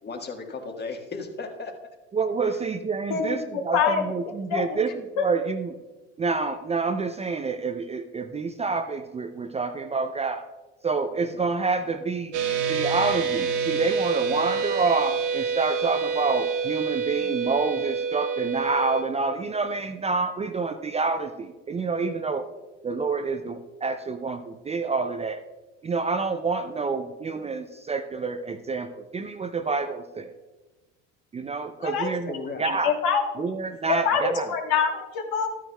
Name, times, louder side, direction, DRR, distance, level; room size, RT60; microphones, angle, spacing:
voice 1, 0.0-1.7 32.3-32.6, left 4 dB, 30° left, 4 dB, 1.5 m, -35 dB
voice 2, 2.1-5.8 6.2-10.4 10.8-12.3 12.7-22.5 22.8-25.4 25.8-30.3 31.3-32.9 33.4-34.5, right 4 dB, 20° right, 8 dB, 0.5 m, -28 dB
voice 3, 3.1-4.1 4.5-4.8 5.2-5.3 31.8-32.1 32.6-33.2 33.9-35.5, left 6 dB, 65° left, 3 dB, 1.4 m, -25 dB
sound 1, 12.3-19.0, right 6 dB, 80° right, 1.4 m, -27 dB
12.5 x 9.3 x 2.3 m, 1.2 s
hypercardioid pair, 75°, 36 cm